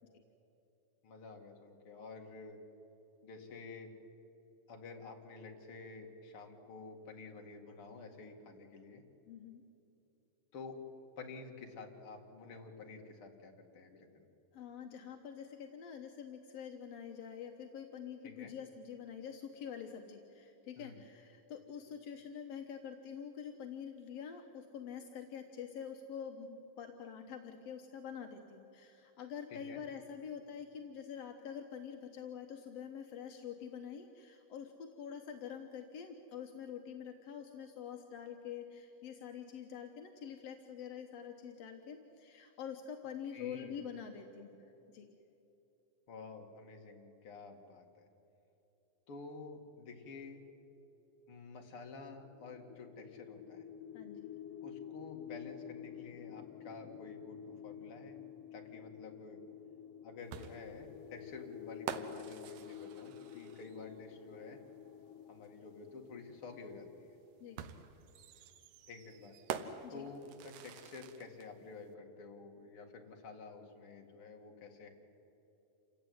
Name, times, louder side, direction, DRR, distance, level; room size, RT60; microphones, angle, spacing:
voice 1, 1.0-2.6 3.2-3.9 4.7-9.0 10.5-10.8 11.2-14.2 18.2-18.5 20.8-21.0 29.5-29.8 43.3-43.8 46.1-48.1 49.1-50.4 51.3-53.7 54.6-58.3 58.5-59.4 60.0-64.6 65.3-67.1 68.9-69.4 69.9-74.9, left 4 dB, 45° left, 2 dB, 2.5 m, -50 dB
voice 2, 9.3-9.6 14.5-44.6 44.9-45.1 53.9-54.3 67.4-67.6 69.8-70.1, left 7 dB, 65° left, 4 dB, 1.7 m, -46 dB
sound 1, 52.2-67.2, left 10 dB, 90° left, 1.4 m, -50 dB
sound 2, 60.3-64.0 65.4-65.5 67.6-71.5, right 8 dB, 75° right, 2.6 m, -46 dB
27.5 x 16.5 x 9.5 m, 3.0 s
omnidirectional pair, 4.1 m